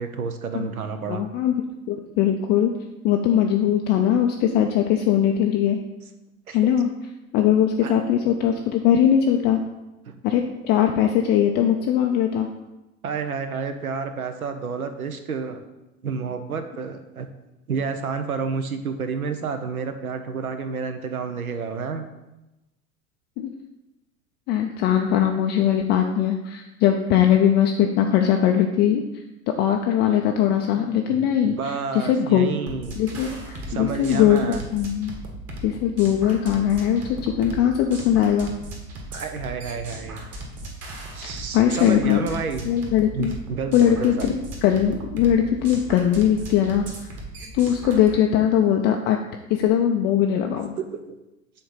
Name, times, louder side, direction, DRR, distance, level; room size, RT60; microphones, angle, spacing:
voice 1, 0.0-1.2 6.5-6.6 7.8-7.9 10.1-10.2 13.0-15.6 16.0-17.3 17.7-22.1 30.8-33.0 33.7-34.6 39.1-40.3 41.1-42.7 43.1-44.3 50.8-51.2, right 5 dB, 85° right, 8 dB, 0.8 m, -30 dB
voice 2, 1.1-1.5 1.9-2.7 3.0-5.8 6.5-6.9 7.3-9.6 10.2-12.5 23.4-23.5 24.5-29.0 29.6-32.5 33.0-35.2 35.6-38.5 41.2-42.2 42.6-43.4 43.7-44.3 44.6-47.1 47.5-49.2 49.5-50.7, left 10 dB, 25° left, 3 dB, 0.3 m, -20 dB
sound 1, 32.7-48.1, right 1 dB, 35° right, 1.7 m, -37 dB
6.6 x 3.9 x 5.6 m, 1.0 s
figure-of-eight pair, 85°, 42 cm